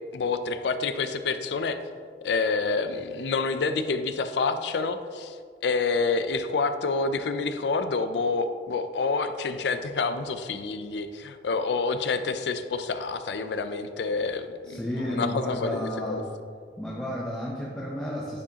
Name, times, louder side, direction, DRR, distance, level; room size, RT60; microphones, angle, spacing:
voice 1, 0.1-1.8 2.2-5.4 5.6-14.8 15.2-16.2, left 4 dB, 80° left, 10 dB, 0.4 m, -28 dB
voice 2, 14.6-16.3 16.8-18.4, left 1 dB, 5° left, -5 dB, 0.6 m, -32 dB
9.5 x 4.8 x 2.9 m, 2.1 s
head